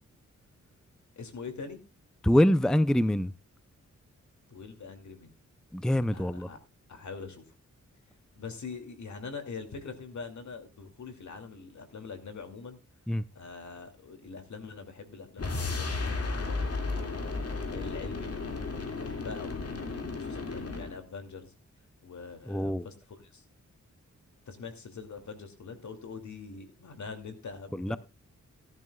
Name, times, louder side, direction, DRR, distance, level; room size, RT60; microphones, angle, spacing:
voice 1, 1.2-1.8 4.5-5.3 6.1-6.6 6.9-7.4 8.4-12.8 13.3-18.3 19.0-21.5 22.0-23.4 24.5-28.0, left 5 dB, 70° left, 2.6 m, -44 dB
voice 2, 2.2-3.3 5.7-6.5 13.1-13.2 22.5-22.9 27.8-28.0, equal, ahead, 0.5 m, -24 dB
sound 1, 15.4-21.0, left 3 dB, 55° left, 2.3 m, -34 dB
17.0 x 11.0 x 2.3 m
cardioid pair, 80°, 30 cm